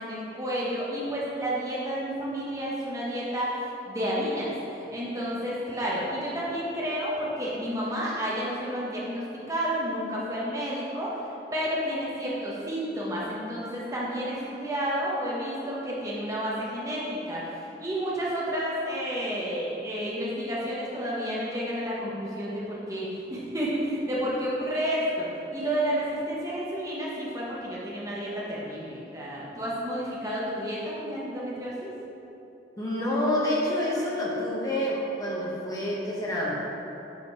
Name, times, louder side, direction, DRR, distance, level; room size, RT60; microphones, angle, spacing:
voice 1, 0.0-11.1 11.5-31.9, equal, 20° right, -6 dB, 1.2 m, -31 dB
voice 2, 32.8-36.6, left 1 dB, 20° left, -5 dB, 1.3 m, -28 dB
8.1 x 5.1 x 4.9 m, 3.0 s
head